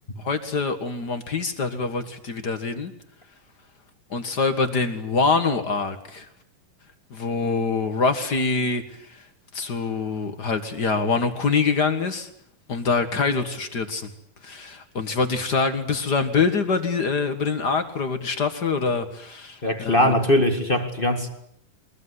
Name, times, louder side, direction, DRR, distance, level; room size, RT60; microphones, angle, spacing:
voice 1, 0.2-2.9 4.1-6.2 7.1-8.8 9.1-9.2 9.5-12.3 12.7-14.1 14.4-20.1, left 4 dB, 40° left, 1.7 m, -25 dB
voice 2, 19.6-21.3, left 1 dB, 25° left, 1.3 m, -21 dB
23.5 x 21.0 x 9.7 m
omnidirectional pair, 3.9 m